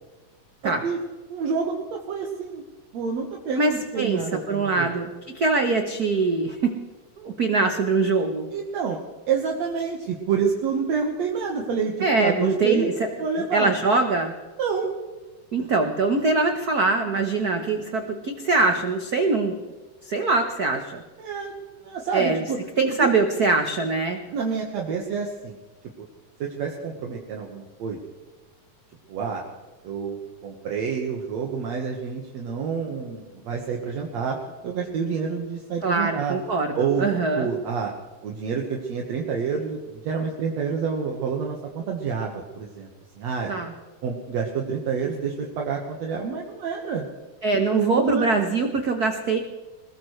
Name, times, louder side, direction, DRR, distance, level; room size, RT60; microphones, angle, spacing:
voice 1, 0.6-1.0 1.3-2.6 2.9-4.9 8.5-9.0 9.3-12.9 13.2-13.7 14.6-14.9 21.2-22.6 23.0-23.1 24.3-25.6 26.4-28.0 29.1-29.4 29.8-34.4 34.6-36.4 36.8-37.1 37.4-37.9 38.2-42.9 43.2-43.6 44.0-47.1 47.7-48.3, right 6 dB, 65° right, 0 dB, 2.5 m, -28 dB
voice 2, 3.6-6.7 7.2-8.5 12.0-13.1 13.5-14.3 15.5-19.6 20.0-21.0 22.1-22.4 22.8-24.2 35.8-37.5 43.5-43.7 47.4-49.4, right 3 dB, 90° right, 5 dB, 0.8 m, -23 dB
22.0 x 20.5 x 3.2 m, 1.3 s
omnidirectional pair, 3.5 m